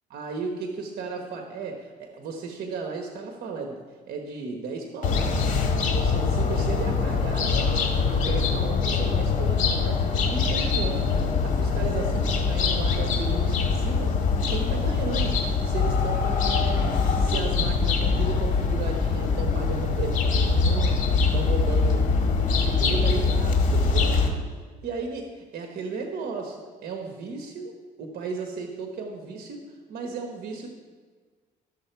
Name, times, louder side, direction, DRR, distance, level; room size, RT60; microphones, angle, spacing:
voice 1, 0.1-5.4 5.8-7.8 8.1-22.1 22.4-24.3 24.8-30.7, right 4 dB, 60° right, 3 dB, 1.2 m, -35 dB
sound 1, 5.0-24.3, left 4 dB, 50° left, 1.7 m, -23 dB
13.0 x 6.8 x 4.6 m, 1.5 s
cardioid pair, 110°, 17 cm